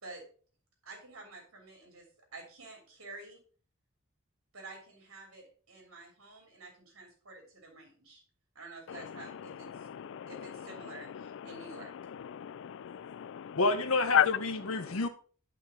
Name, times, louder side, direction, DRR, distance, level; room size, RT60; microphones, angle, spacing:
voice 1, 0.8-2.0 2.3-3.4 4.5-8.2 8.5-9.9 10.3-11.9, right 2 dB, 70° right, 3.2 m, -49 dB
voice 2, 9.7-10.3 11.4-11.5 12.3-13.6 14.1-14.3 14.8-15.0, left 10 dB, 65° left, 0.4 m, -31 dB
voice 3, 13.6-15.1, left 3 dB, 80° left, 1.0 m, -29 dB
10.5 x 5.6 x 4.5 m
head